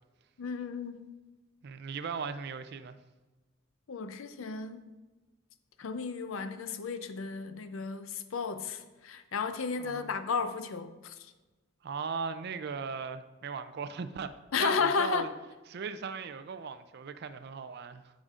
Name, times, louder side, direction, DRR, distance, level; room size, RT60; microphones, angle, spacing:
voice 1, 0.4-1.1 3.9-4.9 5.8-11.3 14.5-15.3, left 5 dB, 75° left, 0.5 m, -33 dB
voice 2, 1.6-3.0 9.8-10.2 11.8-14.3 14.6-15.3 15.7-18.0, right 5 dB, 50° right, 0.4 m, -38 dB
13.0 x 5.0 x 2.4 m
head